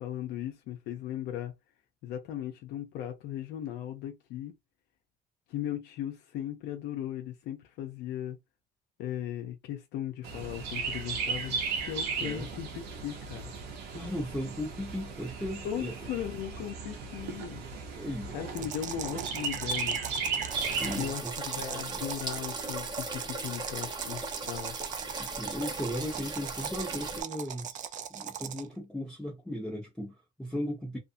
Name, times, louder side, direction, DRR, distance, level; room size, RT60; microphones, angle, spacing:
voice 1, 0.0-1.5 2.0-4.5 5.5-8.4 9.0-13.4 15.6-17.6 18.3-20.0 21.0-24.7, left 10 dB, 85° left, 0.6 m, -37 dB
Chirp tweet, 10.2-21.1, right 5 dB, 85° right, 0.7 m, -36 dB
voice 2, 12.2-12.5 13.9-16.1 17.9-18.7 20.8-21.3 21.7-22.0 25.2-31.0, equal, 5° left, 1.0 m, -37 dB
sound 1, 18.5-28.7, right 9 dB, 50° right, 0.4 m, -40 dB
sound 2, 20.5-27.2, right 2 dB, 25° right, 0.9 m, -38 dB
2.6 x 2.5 x 2.5 m
cardioid pair, 110°, 17 cm